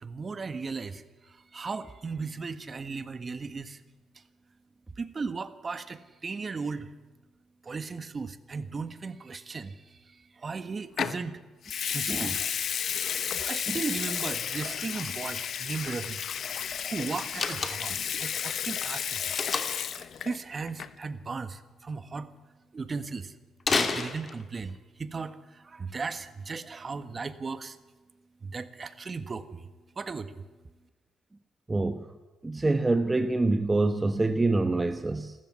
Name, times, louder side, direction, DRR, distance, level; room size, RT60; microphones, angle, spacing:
voice 1, 0.0-3.8 5.0-6.9 7.6-10.0 10.4-11.4 11.9-12.5 13.4-16.2 16.8-19.3 19.9-22.3 22.7-23.3 23.7-27.8 28.4-29.7 30.0-30.4, right 4 dB, 35° right, 12 dB, 1.5 m, -36 dB
Water tap faucet / Sink (filling or washing) / Liquid, 11.0-11.2 11.6-20.4 20.7-21.0, left 8 dB, 60° left, 1.1 m, -32 dB
Slam, 17.3-18.1 19.4-19.9 23.6-24.7, left 4 dB, 40° left, 2.6 m, -29 dB
voice 2, 31.7-32.0 32.4-35.3, right 2 dB, 20° right, 9 dB, 1.0 m, -26 dB
28.0 x 13.5 x 9.7 m, 1.3 s
cardioid pair, 90°, 0 cm